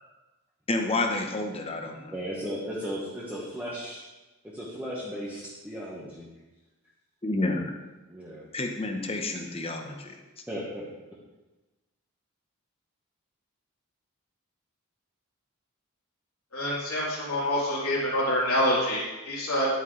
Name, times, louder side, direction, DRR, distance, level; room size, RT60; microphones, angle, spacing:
voice 1, 0.7-2.1 7.2-7.7 8.5-10.1, left 2 dB, 25° left, 4 dB, 0.9 m, -29 dB
voice 2, 2.1-4.1 4.5-6.3 8.1-8.4 10.5-10.9, equal, 5° right, -8 dB, 1.4 m, -36 dB
voice 3, 16.5-19.7, left 1 dB, 80° left, -7 dB, 3.8 m, -26 dB
10.5 x 9.2 x 3.3 m, 1.1 s
head